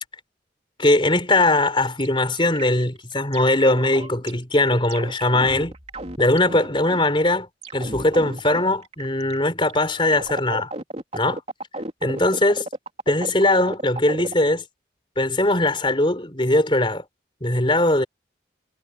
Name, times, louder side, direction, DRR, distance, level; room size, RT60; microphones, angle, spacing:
voice 1, 0.8-5.7 6.2-10.7 11.1-11.4 12.0-12.7 13.1-14.6 15.2-17.0 17.4-18.0, left 2 dB, 25° left, 4.4 m, -20 dB
microsound workshop, 1.5-1.6 2.0-2.1 2.4-4.3 4.6-7.3 7.6-9.4 9.6-14.3, right 2 dB, 35° right, 3.6 m, -34 dB
head